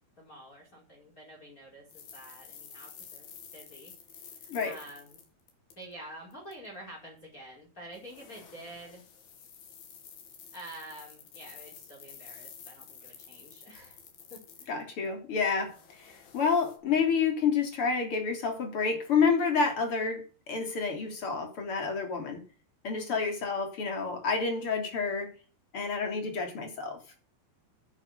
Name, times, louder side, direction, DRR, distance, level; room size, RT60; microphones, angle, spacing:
voice 1, 0.2-3.3 3.5-3.9 4.2-5.2 5.8-9.0 10.5-14.0 14.3-14.9 15.6-15.7 23.0-23.2, right 1 dB, 20° left, -1 dB, 5.3 m, -48 dB
sound 1, 1.9-5.9 6.3-6.5 7.9-15.1 15.4-16.8, left 7 dB, 70° left, 4.5 m, -51 dB
voice 2, 14.7-22.4 22.8-25.3 25.7-27.0, left 5 dB, 35° left, 4 dB, 3.8 m, -29 dB
10.5 x 9.9 x 8.0 m, 0.36 s
omnidirectional pair, 4.6 m